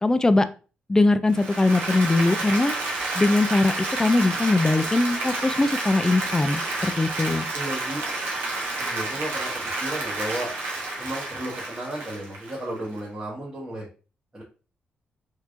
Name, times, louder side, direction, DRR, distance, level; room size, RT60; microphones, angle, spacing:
voice 1, 0.0-0.5 0.9-2.7 3.2-3.7 4.0-7.5, left 2 dB, 15° left, 12 dB, 0.3 m, -21 dB
Applause, 1.3-13.0, right 2 dB, 80° right, 1.0 m, -30 dB
voice 2, 7.5-8.0 8.8-10.5 11.0-13.9 14.3-14.4, right 1 dB, 25° right, -5 dB, 1.2 m, -33 dB
3.3 x 3.0 x 2.5 m, 0.35 s
cardioid pair, 85°, 4 cm